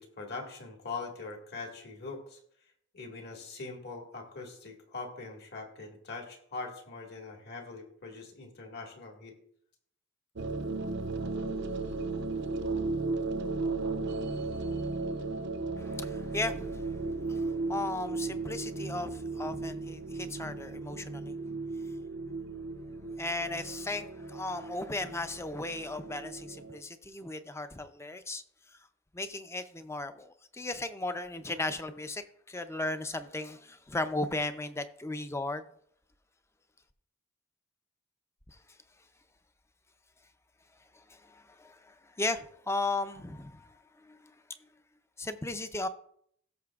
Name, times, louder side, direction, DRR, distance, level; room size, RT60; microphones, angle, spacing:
voice 1, 0.0-2.4 2.9-9.4, left 3 dB, 55° left, 1.8 m, -42 dB
sound 1, 10.4-26.8, right 3 dB, 55° right, 0.6 m, -35 dB
voice 2, 15.7-21.3 23.2-28.4 28.7-28.8 29.1-35.6 40.9-44.4 45.2-45.9, left 2 dB, 15° left, 0.5 m, -36 dB
17.5 x 6.6 x 2.4 m
head